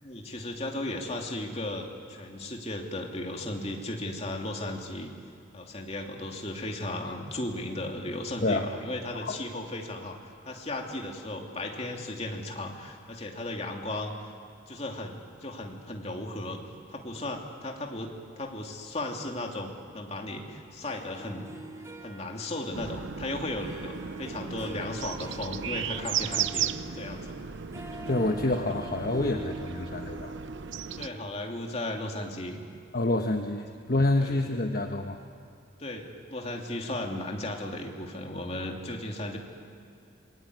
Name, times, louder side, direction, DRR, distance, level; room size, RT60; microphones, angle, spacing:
voice 1, 0.0-5.1 5.5-10.2 10.4-14.3 14.7-16.6 16.9-21.5 22.0-27.3 31.0-32.6 34.2-34.4 35.8-39.4, left 1 dB, 30° left, 1 dB, 2.8 m, -35 dB
Harp, 20.8-31.9, right 1 dB, 15° right, 2.2 m, -45 dB
sound 1, 22.7-31.1, right 8 dB, 70° right, 0.7 m, -35 dB
voice 2, 28.0-30.4 32.9-35.2, left 2 dB, 50° left, 4 dB, 1.2 m, -27 dB
27.0 x 22.0 x 9.6 m, 2.4 s
head